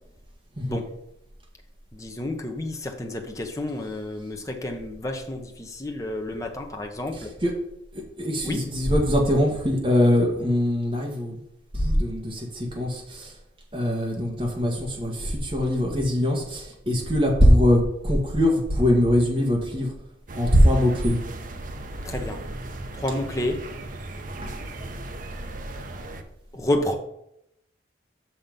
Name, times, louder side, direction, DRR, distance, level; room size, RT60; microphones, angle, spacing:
voice 1, 1.9-7.3 8.4-8.7 22.0-22.4 22.9-23.7 26.5-27.0, left 1 dB, 15° left, 3 dB, 0.9 m, -30 dB
voice 2, 7.9-11.4 11.7-13.3 13.7-19.9 20.4-21.2 24.4-24.6, equal, 30° right, -1 dB, 1.8 m, -22 dB
sound 1, 20.3-26.2, right 2 dB, 45° right, 0.8 m, -36 dB
6.4 x 5.8 x 5.3 m, 0.77 s
head